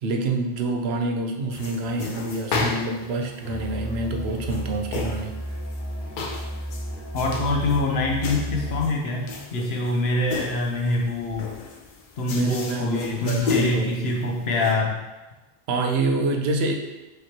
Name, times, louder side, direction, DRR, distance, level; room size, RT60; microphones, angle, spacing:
voice 1, 0.0-5.4 12.3-14.1 15.7-16.7, right 2 dB, 85° right, 3 dB, 0.8 m, -26 dB
sound 1, 1.5-14.7, left 4 dB, 60° left, 0.7 m, -34 dB
Musical instrument, 3.4-8.9, equal, ahead, 1.1 m, -33 dB
voice 2, 7.1-11.5 12.2-15.0, left 2 dB, 80° left, 0 dB, 1.0 m, -25 dB
4.9 x 3.0 x 2.8 m, 1.1 s
omnidirectional pair, 1.0 m